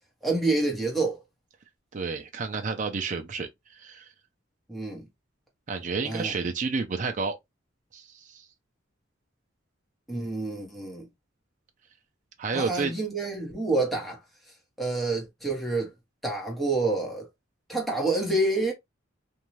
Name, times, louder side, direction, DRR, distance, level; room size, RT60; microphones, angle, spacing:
voice 1, 0.2-1.2 4.7-5.1 6.0-6.3 10.1-11.0 12.5-14.2 14.8-15.9 16.2-17.3 17.7-18.7, right 2 dB, ahead, 0.9 m, -28 dB
voice 2, 1.9-4.1 5.7-7.4 7.9-8.5 12.4-12.9, right 4 dB, 40° right, 0.4 m, -30 dB
2.6 x 2.3 x 3.0 m
head